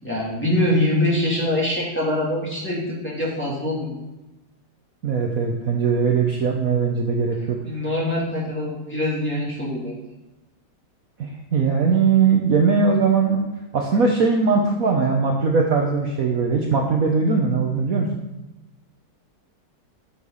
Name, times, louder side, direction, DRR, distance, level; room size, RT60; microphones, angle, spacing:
voice 1, 0.0-4.0 7.6-10.0, left 1 dB, 5° left, -6 dB, 2.6 m, -24 dB
voice 2, 5.0-7.6 11.2-13.4 13.7-18.1, right 5 dB, 55° right, 1 dB, 1.3 m, -20 dB
8.7 x 6.7 x 5.5 m, 1.0 s
omnidirectional pair, 2.0 m